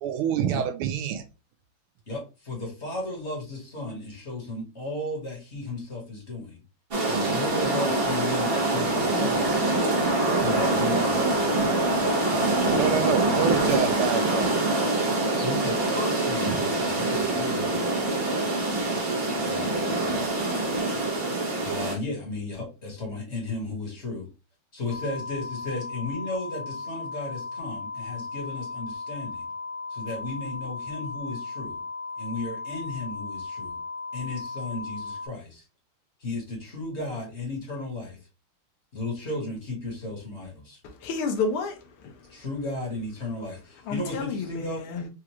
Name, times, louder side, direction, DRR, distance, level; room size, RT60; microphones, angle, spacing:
voice 1, 0.0-1.2 12.8-14.5 16.5-16.6, right 9 dB, 80° right, 1.5 m, -27 dB
voice 2, 2.1-6.6 7.0-9.6 10.3-11.5 15.4-18.1 19.3-20.6 21.6-24.3 24.7-29.5 29.9-31.8 32.2-33.8 34.1-35.6 36.2-38.2 38.9-40.8 42.3-44.8, left 2 dB, 35° left, 1.5 m, -35 dB
sound 1, 6.9-21.9, right 2 dB, 40° right, 0.9 m, -25 dB
sound 2, 24.9-35.3, left 4 dB, 60° left, 1.1 m, -36 dB
voice 3, 40.8-42.3 43.9-45.1, left 4 dB, 80° left, 1.7 m, -31 dB
4.6 x 2.4 x 2.9 m
omnidirectional pair, 2.3 m